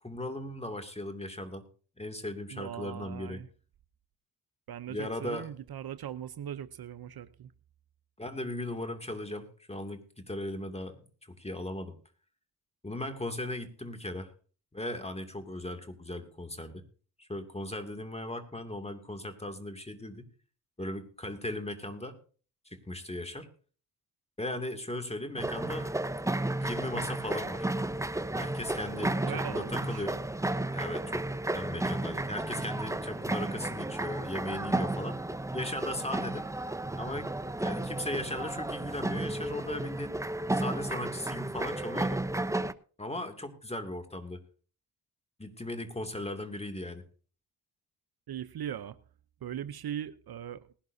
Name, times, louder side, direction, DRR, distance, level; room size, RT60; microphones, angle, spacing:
voice 1, 0.0-1.7 2.0-3.4 4.9-5.5 8.2-12.0 12.8-14.3 14.7-16.8 17.2-20.2 20.8-22.1 22.7-23.5 24.4-25.9 26.6-27.7 28.3-30.2 30.7-35.2 35.5-36.4 37.0-37.3 37.6-40.2 40.5-42.2 43.0-44.4 45.4-47.0, left 1 dB, 15° left, 7 dB, 2.6 m, -37 dB
voice 2, 2.5-3.5 4.7-7.5 28.9-30.0 48.3-49.0 49.4-50.7, right 10 dB, 60° right, 12 dB, 0.9 m, -40 dB
sound 1, 25.4-42.7, right 2 dB, 5° right, 0.8 m, -33 dB
19.5 x 11.5 x 2.8 m, 0.39 s
supercardioid pair, 60°, 42 cm